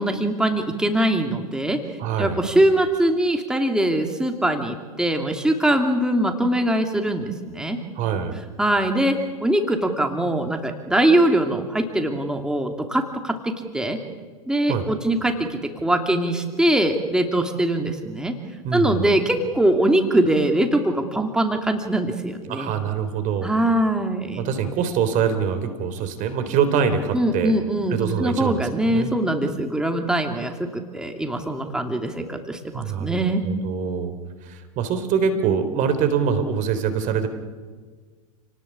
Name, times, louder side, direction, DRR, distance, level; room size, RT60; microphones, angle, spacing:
voice 1, 0.0-1.8 2.2-7.8 8.6-14.0 14.5-18.3 18.7-22.7 23.4-24.5 27.1-33.4, right 1 dB, 5° right, 4 dB, 2.8 m, -22 dB
voice 2, 2.0-2.4 8.0-8.4 14.7-14.9 18.6-19.1 22.5-23.5 24.4-27.5 27.9-29.1 32.7-34.1 34.4-37.3, right 7 dB, 40° right, 9 dB, 3.7 m, -24 dB
29.5 x 19.0 x 8.6 m, 1.5 s
hypercardioid pair, 95°, 19 cm